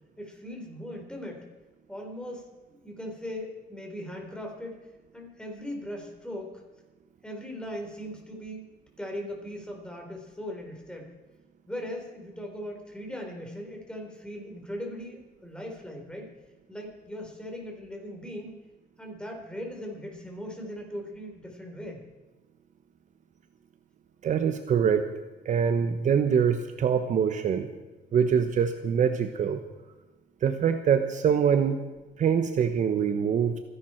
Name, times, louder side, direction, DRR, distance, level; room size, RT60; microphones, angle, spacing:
voice 1, 0.2-1.5 1.9-4.8 5.1-6.6 7.2-8.7 9.0-11.1 11.7-16.3 16.7-18.5 19.0-22.0, equal, 5° left, 1 dB, 4.3 m, -39 dB
voice 2, 24.2-25.1 25.4-27.7 28.1-29.6 30.4-31.8 32.2-33.6, right 7 dB, 45° right, 8 dB, 1.1 m, -24 dB
25.5 x 11.5 x 4.5 m, 1.1 s
cardioid pair, 110°, 17 cm